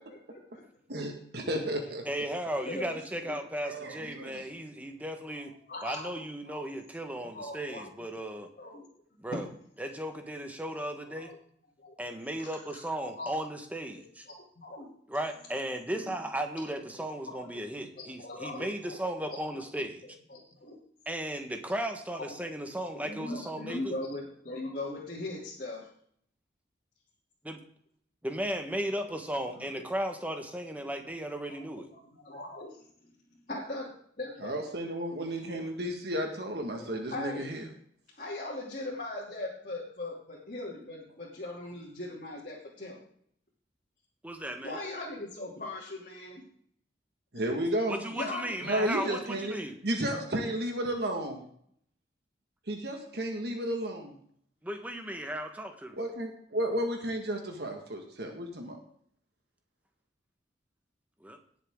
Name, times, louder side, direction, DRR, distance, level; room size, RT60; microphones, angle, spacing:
voice 1, 0.1-0.6 2.5-3.0 3.3-3.4 5.3-5.4 5.7-6.1 6.5-6.6 7.2-7.9 8.3-8.9 9.1-9.3 11.1-11.4 11.8-11.9 13.0-13.3 14.3-14.9 15.9-16.1 17.2-17.5 18.0-19.4 20.0-20.8 22.2-22.3 22.9-25.9 31.5-33.1 33.5-34.5 36.8-37.6 38.2-43.0 44.6-46.4 47.3-47.4 48.1-49.4, left 2 dB, 50° left, -6 dB, 2.9 m, -40 dB
voice 2, 0.9-2.0 3.6-4.5 34.4-37.6 47.3-48.0 48.6-49.6 49.8-51.4 52.7-54.1 56.0-58.8, right 1 dB, 60° right, 3 dB, 1.7 m, -33 dB
voice 3, 2.0-5.5 5.8-8.5 9.2-9.5 9.8-11.3 12.0-14.2 15.1-20.0 21.1-24.0 27.4-27.6 28.2-31.9 44.2-44.8 47.9-49.8 54.6-56.0 61.2-61.4, right 1 dB, 10° right, 5 dB, 1.3 m, -36 dB
18.5 x 7.1 x 3.7 m, 0.64 s
head